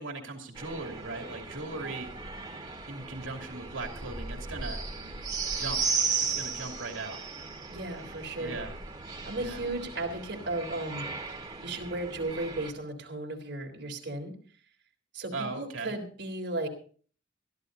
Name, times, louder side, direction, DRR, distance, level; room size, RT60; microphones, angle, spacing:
voice 1, 0.0-2.1 2.9-4.8 5.5-5.8 6.4-7.2 8.4-8.7 9.4-9.6 15.3-15.9, right 3 dB, 75° right, 3 dB, 2.7 m, -38 dB
sound 1, 0.6-12.7, right 4 dB, 20° right, 1.9 m, -36 dB
voice 2, 7.7-8.6 9.2-11.1 11.6-14.3 15.1-16.7, right 2 dB, 60° right, 1 dB, 3.4 m, -35 dB
22.0 x 13.5 x 2.7 m, 0.43 s
head